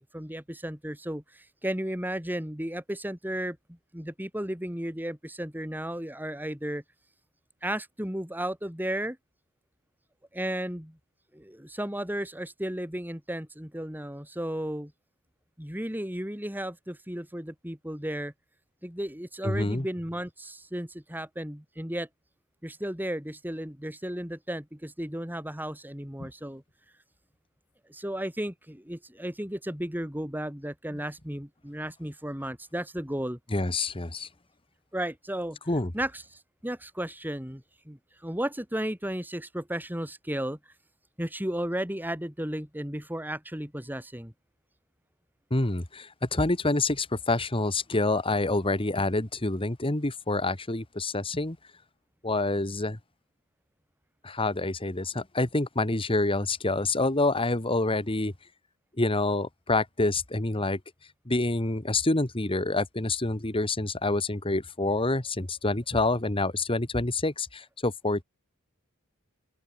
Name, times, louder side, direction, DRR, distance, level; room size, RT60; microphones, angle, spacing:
voice 1, 0.0-6.8 7.6-9.2 10.3-11.0 11.3-14.9 15.6-18.3 18.8-22.1 22.6-26.6 27.9-33.4 34.9-35.6 35.9-40.6 41.2-44.3, right 1 dB, 10° right, 3.8 m, -34 dB
voice 2, 19.4-19.9 26.2-26.3 33.5-34.3 35.7-35.9 45.5-51.6 52.2-53.0 54.2-58.3 59.0-60.8 61.2-68.2, left 2 dB, 25° left, 1.7 m, -27 dB
open air
head